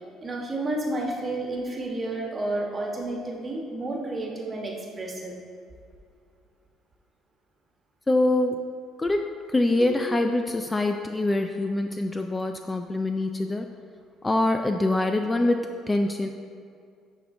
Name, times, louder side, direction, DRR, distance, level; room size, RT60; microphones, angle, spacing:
voice 1, 0.2-5.4 9.8-9.9, right 2 dB, 30° right, 0 dB, 1.2 m, -31 dB
voice 2, 8.1-8.6 9.0-13.7 14.2-16.3, left 2 dB, 15° left, 5 dB, 0.3 m, -24 dB
10.5 x 3.6 x 3.7 m, 2.3 s
supercardioid pair, 90°, 0 cm